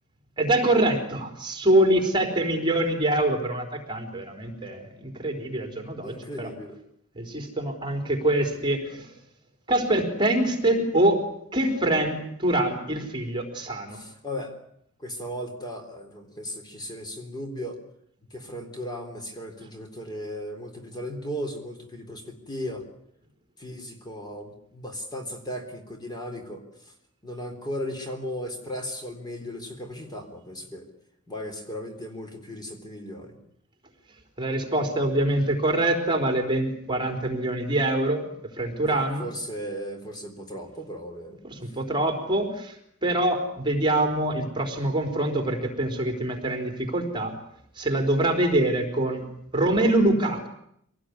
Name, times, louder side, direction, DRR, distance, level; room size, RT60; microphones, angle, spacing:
voice 1, 0.4-6.5 7.2-9.1 9.7-14.0 34.4-39.3 41.4-42.8 43.0-47.3 47.8-49.2 49.5-50.5, right 1 dB, 25° right, 4 dB, 4.1 m, -25 dB
voice 2, 6.0-6.8 13.9-14.5 15.0-17.8 18.3-22.8 23.6-26.6 27.2-30.9 31.3-33.4 38.8-41.4, equal, 20° left, 5 dB, 3.7 m, -36 dB
25.5 x 19.0 x 9.8 m, 0.72 s
head